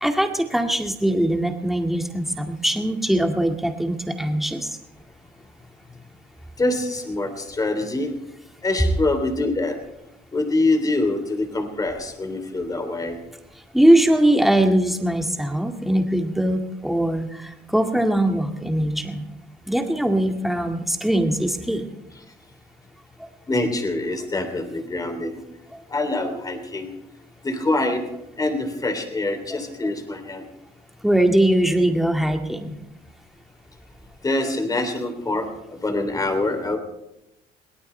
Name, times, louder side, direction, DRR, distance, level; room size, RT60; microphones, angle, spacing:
voice 1, 0.0-4.8 13.7-19.2 19.7-21.9 23.2-23.3 25.7-25.8 29.5-29.9 31.0-32.8, right 1 dB, ahead, 3 dB, 2.1 m, -21 dB
voice 2, 6.6-8.1 8.6-9.8 10.3-13.2 23.5-25.4 25.9-26.9 27.4-28.0 28.4-30.4 34.2-36.8, left 2 dB, 20° left, 6 dB, 3.3 m, -25 dB
22.5 x 18.5 x 3.4 m, 0.90 s
cardioid pair, 110°, 17 cm